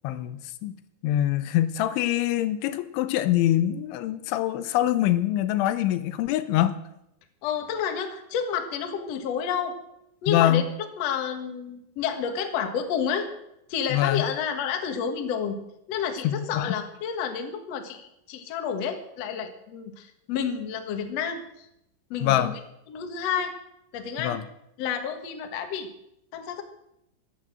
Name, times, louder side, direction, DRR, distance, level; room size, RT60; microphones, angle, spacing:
voice 1, 0.0-0.7 1.0-6.8 10.3-10.6 13.9-14.3 16.2-16.8 22.2-22.5 24.2-24.4, left 13 dB, 90° left, 12 dB, 3.3 m, -24 dB
voice 2, 7.4-9.8 10.2-13.3 13.7-15.6 15.9-21.7 22.1-22.6 22.9-23.5 23.9-24.4 24.8-25.9 26.3-26.6, left 7 dB, 60° left, 5 dB, 1.8 m, -30 dB
13.0 x 12.0 x 7.7 m, 0.81 s
omnidirectional pair, 5.3 m